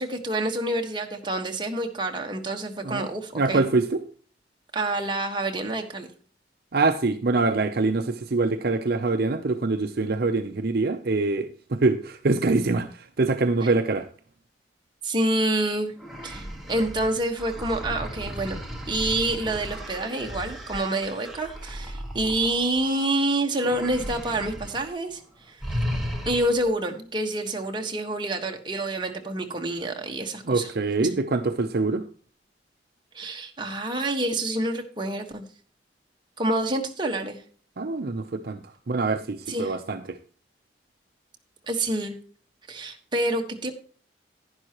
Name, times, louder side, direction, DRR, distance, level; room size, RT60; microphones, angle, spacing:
voice 1, 0.0-3.6 4.7-6.1 13.6-13.7 15.0-15.9 16.2-18.6 18.9-25.2 25.5-25.8 26.2-30.7 31.0-31.2 33.1-35.4 36.4-37.4 39.5-39.7 41.7-42.2 42.7-43.7, right 1 dB, 25° right, 2 dB, 1.4 m, -27 dB
voice 2, 3.4-4.0 6.7-14.1 30.5-32.0 37.8-38.6 38.9-40.2, right 3 dB, 55° right, 7 dB, 0.6 m, -24 dB
sound 1, 16.0-23.1 23.6-24.8 25.1-25.3 25.6-26.7, equal, ahead, 1.7 m, -35 dB
11.0 x 10.5 x 3.0 m, 0.43 s
head